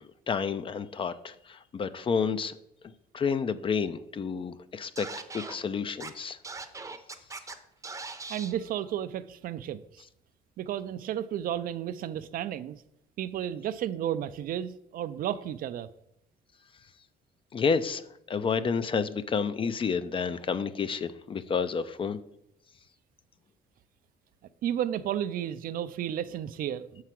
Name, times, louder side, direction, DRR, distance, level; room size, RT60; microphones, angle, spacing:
voice 1, 0.0-2.6 2.8-6.4 17.5-18.0 18.3-22.2, left 5 dB, 30° left, 0.5 m, -30 dB
Scratching (performance technique), 5.0-5.6 6.0-6.1 6.4-7.5 7.8-8.5, right 4 dB, 20° right, 0.7 m, -39 dB
voice 2, 8.3-10.0 10.6-12.8 13.2-15.9 24.6-27.0, right 10 dB, 55° right, 0.4 m, -33 dB
6.7 x 4.7 x 5.8 m
cardioid pair, 110°, 17 cm